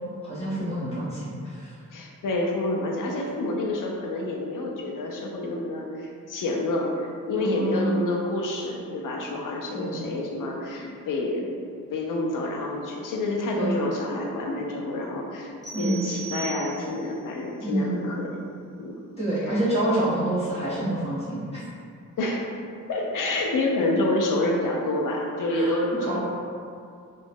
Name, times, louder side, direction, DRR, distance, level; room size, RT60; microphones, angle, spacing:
voice 1, 0.2-1.7 7.4-8.0 9.7-10.1 13.5-13.8 15.7-16.1 17.6-18.0 19.2-21.6 25.5-25.7 26.0-26.2, right 1 dB, 20° left, -12 dB, 1.5 m, -27 dB
voice 2, 1.9-11.5 11.9-18.4 18.8-19.0 19.4-19.6 22.2-22.5 22.9-26.2, left 2 dB, 75° left, -1 dB, 0.5 m, -28 dB
sound 1, 15.6-17.2, right 5 dB, 10° right, 1.0 m, -38 dB
2.9 x 2.3 x 2.6 m, 2.4 s
cardioid pair, 60°, 32 cm